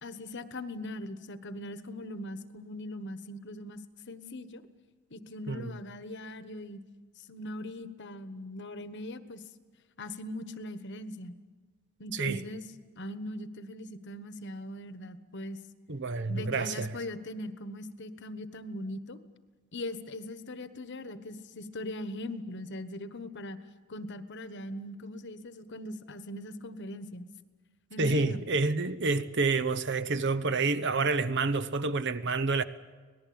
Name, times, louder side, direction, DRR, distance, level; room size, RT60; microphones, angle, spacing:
voice 1, 0.0-3.8 4.1-4.6 5.1-6.8 7.2-9.4 10.0-11.4 12.0-12.6 13.0-15.6 16.3-19.2 19.7-23.6 23.9-27.3 27.9-28.4, left 1 dB, 50° left, 1.3 m, -40 dB
voice 2, 15.9-16.9 28.0-32.6, right 3 dB, 55° right, 0.9 m, -28 dB
25.5 x 19.0 x 8.7 m
head